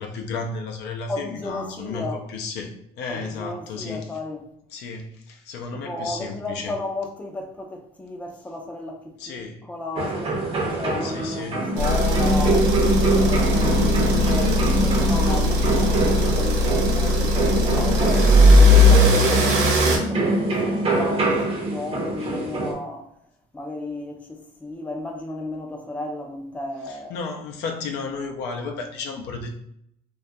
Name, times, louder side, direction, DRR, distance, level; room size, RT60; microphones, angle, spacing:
voice 1, 0.0-4.0 4.7-6.7 9.2-9.7 11.0-11.6 13.5-14.2 18.1-18.3 26.9-29.6, left 4 dB, 80° left, 0.4 m, -33 dB
voice 2, 1.1-2.2 3.1-4.5 5.7-12.7 13.1-19.7 20.1-23.1 23.5-27.1, left 2 dB, 10° left, 0.4 m, -34 dB
sound 1, 10.0-22.7, right 2 dB, 35° right, 0.6 m, -24 dB
sound 2, 11.8-20.0, left 1 dB, 90° right, 0.5 m, -18 dB
2.3 x 2.1 x 2.6 m
cardioid pair, 110°, 17 cm